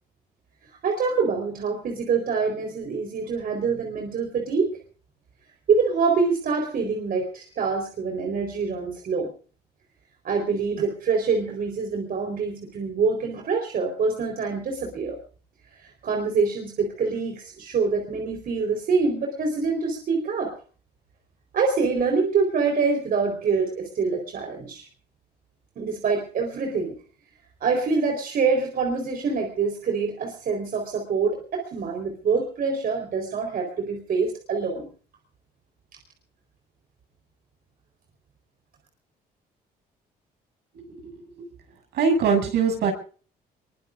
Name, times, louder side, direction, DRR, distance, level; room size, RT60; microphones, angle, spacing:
voice 1, 0.8-4.8 5.7-9.3 10.2-15.2 15.8-20.5 21.5-24.9 25.8-26.9 27.6-34.9, right 4 dB, 60° right, 3 dB, 4.3 m, -25 dB
voice 2, 41.9-42.9, right 5 dB, 75° right, 3 dB, 7.3 m, -22 dB
23.0 x 22.5 x 2.6 m, 0.40 s
cardioid pair, 80°, 17 cm